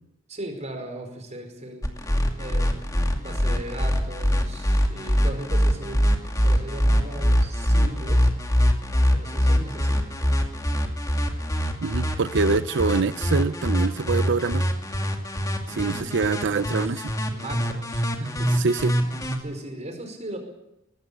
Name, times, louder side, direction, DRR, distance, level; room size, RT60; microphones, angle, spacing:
voice 1, 0.3-8.3 9.1-10.2 15.7-18.6 19.0-20.4, right 1 dB, 35° right, 4 dB, 5.0 m, -38 dB
sound 1, 1.8-19.4, equal, 20° left, 2.5 m, -23 dB
voice 2, 11.8-14.6 15.7-17.0 18.6-19.0, right 4 dB, 60° right, 14 dB, 0.7 m, -24 dB
20.0 x 16.0 x 8.4 m, 0.90 s
head